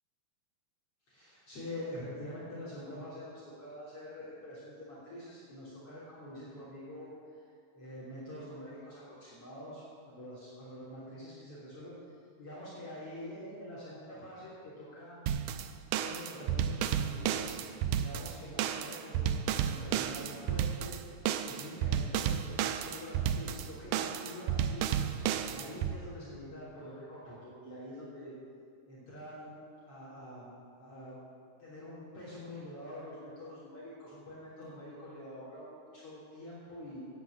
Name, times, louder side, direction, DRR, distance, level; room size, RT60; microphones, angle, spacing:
voice 1, 1.1-7.1 7.7-11.9 12.4-15.2 15.9-17.6 17.9-21.0 21.2-25.0 25.5-28.3 28.9-29.6 29.8-30.5 30.8-31.2 31.6-37.1, left 1 dB, 45° left, -9 dB, 4.1 m, -46 dB
sound 1, 15.3-25.9, right 9 dB, 80° right, 2.0 m, -32 dB
11.0 x 9.5 x 8.4 m, 2.2 s
omnidirectional pair, 3.8 m